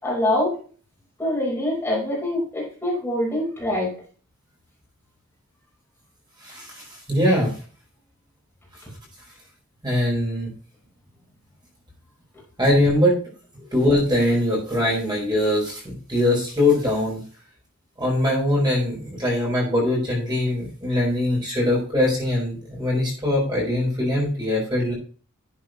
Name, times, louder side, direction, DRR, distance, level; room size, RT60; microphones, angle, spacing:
voice 1, 0.0-0.5 1.2-3.9, left 1 dB, 10° left, -4 dB, 4.5 m, -24 dB
voice 2, 6.4-7.5 9.8-10.5 12.6-13.2 13.7-17.2 18.0-24.9, left 1 dB, 20° right, -3 dB, 4.8 m, -22 dB
11.5 x 8.2 x 3.1 m, 0.40 s
head